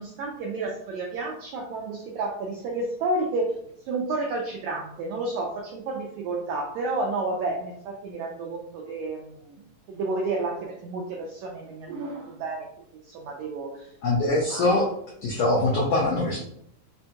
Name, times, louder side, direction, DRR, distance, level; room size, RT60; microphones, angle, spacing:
voice 1, 0.0-3.5 3.9-9.6 9.9-12.7 13.0-13.9 14.3-14.6, right 2 dB, 85° right, -1 dB, 1.6 m, -31 dB
voice 2, 14.0-14.9 15.2-16.4, left 2 dB, 80° left, -4 dB, 1.4 m, -23 dB
5.2 x 2.2 x 2.8 m, 0.72 s
omnidirectional pair, 3.8 m